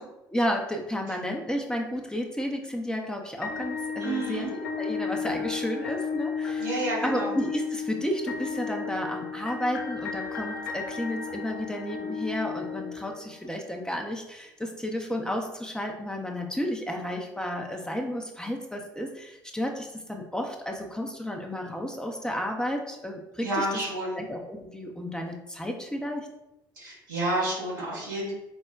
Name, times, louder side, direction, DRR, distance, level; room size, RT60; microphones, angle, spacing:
voice 1, 0.3-6.7 7.0-23.7 24.2-26.3, equal, 5° left, 2 dB, 0.6 m, -32 dB
sound 1, 3.4-13.5, left 5 dB, 85° left, 0.4 m, -33 dB
voice 2, 4.0-4.5 6.6-7.3 23.4-24.2 26.8-28.3, right 1 dB, 85° right, -6 dB, 1.1 m, -30 dB
4.3 x 2.1 x 2.3 m, 0.93 s
hypercardioid pair, 55°, 11 cm